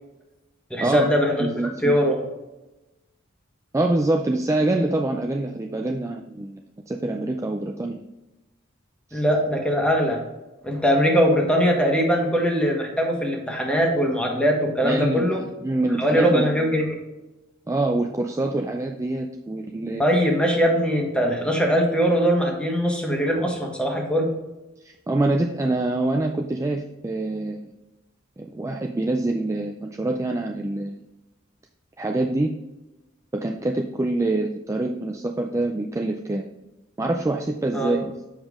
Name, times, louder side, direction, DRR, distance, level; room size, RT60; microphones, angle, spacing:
voice 1, 0.7-1.5 1.8-2.2 9.1-10.2 10.6-15.4 16.0-17.0 20.0-24.3 37.7-38.0, equal, 5° left, 0 dB, 1.4 m, -21 dB
voice 2, 1.4-1.9 3.7-8.0 9.1-9.2 14.8-16.5 17.7-20.0 24.8-27.7 28.4-31.0 32.0-32.5 33.3-36.4 37.0-38.3, right 2 dB, 15° right, 3 dB, 0.4 m, -25 dB
7.2 x 5.3 x 3.6 m, 1.0 s
head